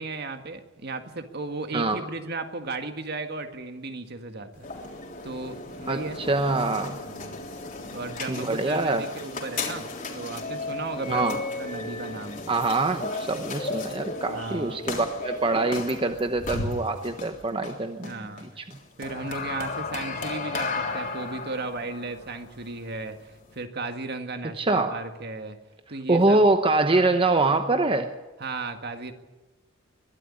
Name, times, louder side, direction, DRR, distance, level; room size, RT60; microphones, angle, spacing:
voice 1, 0.0-4.7 5.2-6.2 6.9-7.4 7.9-12.4 14.3-14.9 18.0-18.5 19.0-25.6 25.9-26.4 28.4-29.1, right 3 dB, 55° right, 7 dB, 1.8 m, -35 dB
sound 1, 4.6-23.6, left 3 dB, 45° left, 3.5 m, -35 dB
voice 2, 5.9-7.0 8.3-9.1 11.1-11.4 12.5-18.1 18.6-18.8 24.6-25.0 26.1-28.1, right 2 dB, 25° right, 7 dB, 0.9 m, -24 dB
22.5 x 12.5 x 9.8 m, 1.2 s
head